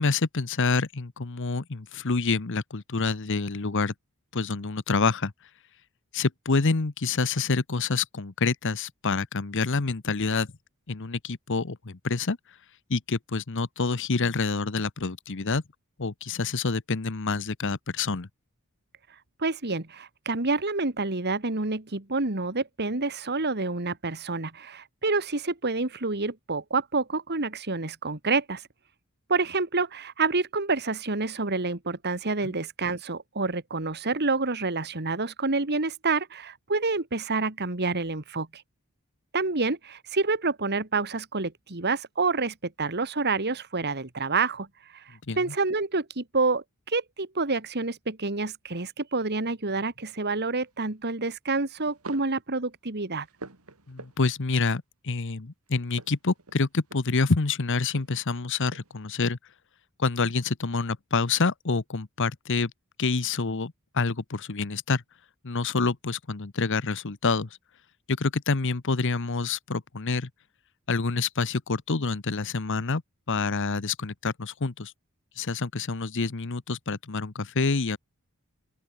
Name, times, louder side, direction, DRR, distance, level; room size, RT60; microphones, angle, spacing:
voice 1, 0.0-3.9 4.3-5.3 6.1-10.5 10.9-12.4 12.9-15.6 16.0-18.3 32.4-32.5 45.3-45.4 53.9-59.4 60.0-62.7 63.0-65.0 65.4-67.5 68.1-70.3 70.9-73.0 73.3-74.9 75.4-78.0, left 4 dB, 60° left, 1.0 m, -27 dB
voice 2, 19.4-28.6 29.3-38.6 39.3-44.7 44.9-53.3, right 3 dB, 50° right, 2.2 m, -28 dB
sound 1, 50.6-50.9 51.7-52.4 52.9-54.5 55.8-57.3 57.9-59.1, right 3 dB, 85° right, 2.7 m, -47 dB
open air
head